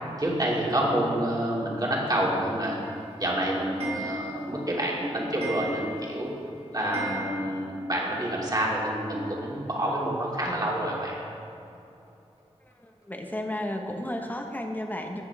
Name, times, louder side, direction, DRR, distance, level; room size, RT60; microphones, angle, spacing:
voice 1, 0.2-2.8 3.2-6.3 6.7-11.1, right 1 dB, 35° right, -4 dB, 2.7 m, -28 dB
Clock, 2.8-7.9 8.2-8.3 8.5-8.6 8.9-9.0 10.1-10.2 10.8-10.9 11.4-11.5 12.1-12.2 12.7-12.8 13.3-13.4, right 2 dB, 65° right, 2.2 m, -38 dB
voice 2, 12.6-15.2, left 1 dB, 15° left, 2 dB, 1.3 m, -33 dB
14.5 x 7.9 x 3.6 m, 2.8 s
cardioid pair, 45°, 11 cm